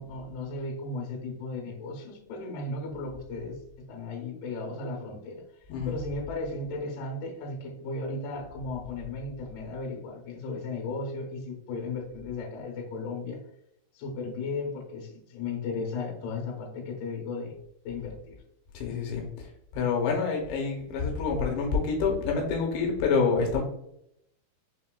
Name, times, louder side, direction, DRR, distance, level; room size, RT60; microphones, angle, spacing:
voice 1, 0.0-3.6 3.9-5.4 5.9-13.4 13.9-17.6 17.8-18.4, left 3 dB, 70° left, 0 dB, 2.9 m, -35 dB
voice 2, 18.7-19.2 19.7-23.6, left 5 dB, 85° left, 0 dB, 3.0 m, -27 dB
6.5 x 2.8 x 2.3 m, 0.76 s
omnidirectional pair, 5.0 m